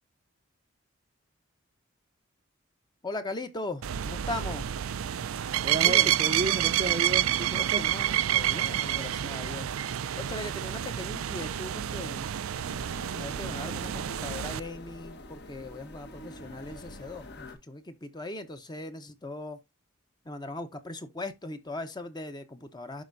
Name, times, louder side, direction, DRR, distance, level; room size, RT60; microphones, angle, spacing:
voice 1, 3.0-4.7 5.8-6.2 7.5-9.7 10.1-12.3 13.2-19.6 20.2-23.0, left 2 dB, 20° left, 0.8 m, -39 dB
sound 1, 3.8-14.6, right 11 dB, 85° right, 0.4 m, -28 dB
voice 2, 5.6-7.9, right 2 dB, 30° right, 0.6 m, -33 dB
sound 2, 12.5-17.6, left 1 dB, 55° left, 1.3 m, -45 dB
11.5 x 4.3 x 2.6 m
head